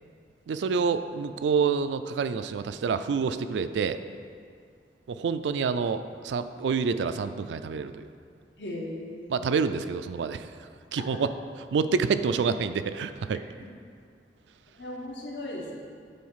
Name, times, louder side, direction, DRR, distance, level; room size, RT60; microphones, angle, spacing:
voice 1, 0.5-4.0 5.1-8.0 9.3-10.5 10.9-11.3 11.7-13.4, right 5 dB, 90° right, 11 dB, 0.3 m, -27 dB
voice 2, 8.6-9.6 11.0-11.3 14.8-15.8, left 1 dB, 85° left, -2 dB, 1.3 m, -38 dB
7.6 x 3.9 x 5.6 m, 2.2 s
head